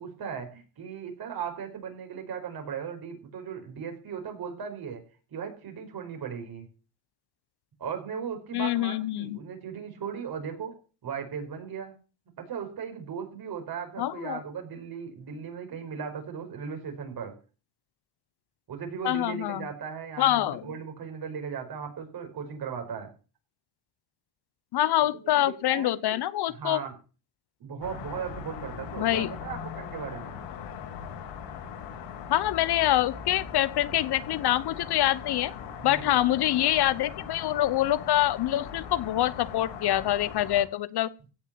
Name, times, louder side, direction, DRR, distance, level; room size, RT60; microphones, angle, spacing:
voice 1, 0.0-5.0 5.3-6.7 7.8-10.8 11.0-11.9 12.4-17.3 18.7-23.1 25.1-26.2 26.5-26.9 27.6-30.4 35.8-36.2, right 7 dB, 50° right, 4 dB, 5.1 m, -37 dB
voice 2, 8.5-9.4 14.0-14.4 19.0-19.6 20.2-20.6 24.7-26.8 29.0-29.3 32.3-35.5 35.8-41.1, left 13 dB, 55° left, 17 dB, 1.0 m, -25 dB
sound 1, 27.8-40.6, left 7 dB, 85° left, 4.8 m, -40 dB
16.5 x 6.2 x 8.9 m, 0.36 s
cardioid pair, 115°, 46 cm